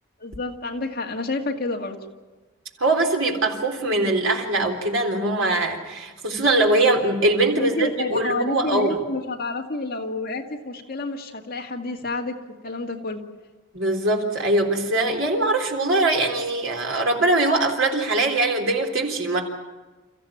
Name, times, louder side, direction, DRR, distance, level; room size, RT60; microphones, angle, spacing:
voice 1, 0.2-2.0 7.5-12.4 12.6-13.2, left 2 dB, 45° left, 0 dB, 2.3 m, -29 dB
voice 2, 2.8-9.0 13.7-19.4, right 2 dB, 70° right, 2 dB, 3.7 m, -22 dB
29.5 x 14.5 x 8.8 m, 1.2 s
head